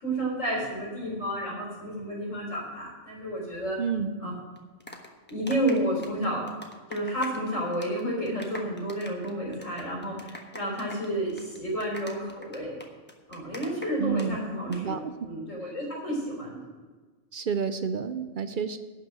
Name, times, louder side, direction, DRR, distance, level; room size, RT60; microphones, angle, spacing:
voice 1, 0.0-3.8 4.2-4.3 5.3-6.5 6.9-12.7 13.3-14.9 15.2-16.6, right 1 dB, 85° left, -4 dB, 4.0 m, -31 dB
voice 2, 3.8-4.1 14.0-14.4 14.7-15.1 17.3-18.8, right 6 dB, 60° right, 11 dB, 0.5 m, -29 dB
sound 1, 4.6-7.5 7.7-8.0 8.3-14.3 14.6-14.8, left 1 dB, 10° left, 1.0 m, -43 dB
11.5 x 5.6 x 8.8 m, 1.3 s
omnidirectional pair, 1.3 m